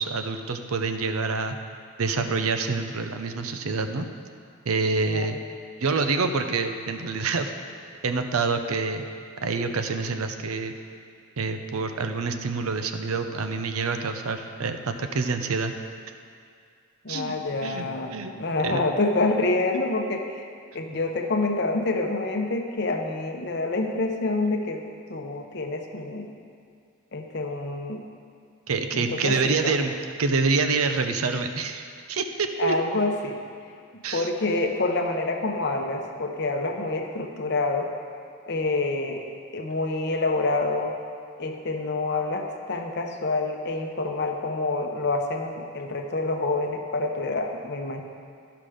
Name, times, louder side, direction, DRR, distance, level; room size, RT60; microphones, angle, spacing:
voice 1, 0.0-1.6 2.0-4.1 4.7-5.4 5.8-7.5 8.0-9.0 9.4-10.7 11.4-15.7 17.1-17.3 17.6-17.8 18.1-18.3 18.6-18.8 28.7-32.7 34.0-34.3, right 4 dB, 90° right, 7 dB, 0.7 m, -27 dB
voice 2, 5.1-5.4 17.0-20.4 20.7-24.8 25.1-26.3 27.1-28.0 28.9-29.7 32.6-33.4 34.1-37.9 38.5-39.3 39.5-40.9 41.4-48.0, left 2 dB, 50° left, 4 dB, 0.8 m, -27 dB
12.0 x 5.8 x 5.0 m, 2.3 s
head